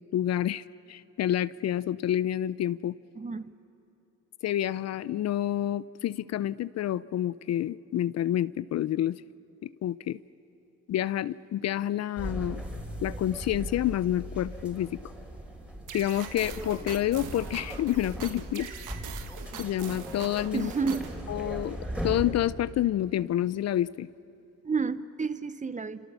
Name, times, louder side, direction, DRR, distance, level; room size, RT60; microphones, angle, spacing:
voice 1, 0.1-3.0 4.4-9.2 9.6-10.2 10.9-12.6 13.0-15.0 15.9-18.7 19.6-20.7 21.3-21.8 22.0-24.1, left 12 dB, 60° left, 0.5 m, -28 dB
voice 2, 3.2-3.5 20.5-21.0 24.6-26.0, right 4 dB, 25° right, 0.9 m, -30 dB
sound 1, 12.2-22.7, equal, 5° right, 4.5 m, -38 dB
sound 2, 15.9-21.2, right 8 dB, 85° right, 1.5 m, -43 dB
28.5 x 26.5 x 6.8 m
cardioid pair, 90°, 30 cm